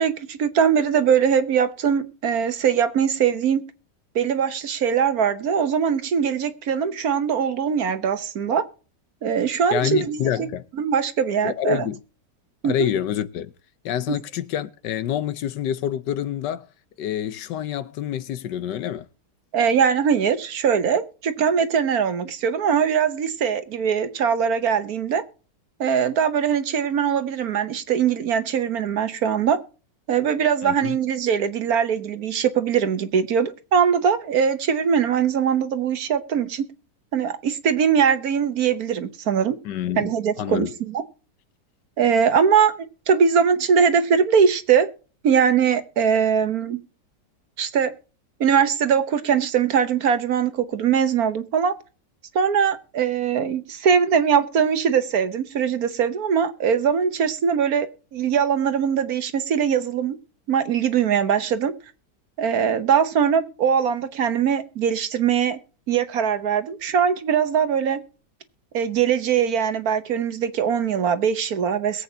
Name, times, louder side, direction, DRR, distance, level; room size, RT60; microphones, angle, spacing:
voice 1, 0.0-3.6 4.1-8.6 9.2-10.2 10.8-11.8 12.6-12.9 19.5-25.2 25.8-29.6 30.1-36.6 37.1-39.6 40.0-41.0 42.0-44.9 45.2-46.8 47.6-47.9 48.4-51.7 52.3-60.2 60.5-61.7 62.4-65.6 65.9-68.0 68.7-72.0, right 7 dB, 60° right, 1.3 m, -21 dB
voice 2, 9.7-10.6 11.4-12.0 12.6-13.5 13.8-16.7 17.0-19.0 30.6-31.0 39.6-40.7, left 10 dB, 75° left, 1.4 m, -27 dB
22.0 x 8.1 x 2.7 m
omnidirectional pair, 1.9 m